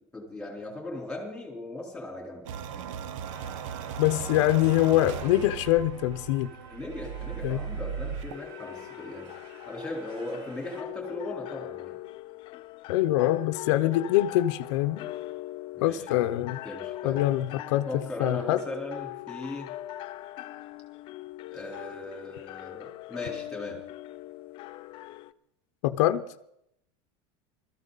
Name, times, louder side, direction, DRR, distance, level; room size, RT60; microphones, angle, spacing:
voice 1, 0.1-2.4 4.2-4.3 6.7-9.3 9.7-12.0 15.7-16.3 16.6-17.2 17.8-19.7 21.5-23.8, left 2 dB, 5° left, -1 dB, 3.9 m, -38 dB
sound 1, 2.4-8.3, right 7 dB, 80° right, 0.9 m, -37 dB
sound 2, 3.2-10.8, right 1 dB, 35° right, 3.2 m, -51 dB
voice 2, 4.0-6.5 7.4-7.6 12.9-15.0 15.8-16.6 17.0-17.9 18.2-18.6 25.8-26.2, left 14 dB, 70° left, 8 dB, 0.8 m, -24 dB
sound 3, 8.3-25.3, left 16 dB, 30° left, 0.5 m, -41 dB
21.0 x 14.0 x 4.1 m, 0.79 s
supercardioid pair, 170°, 16 cm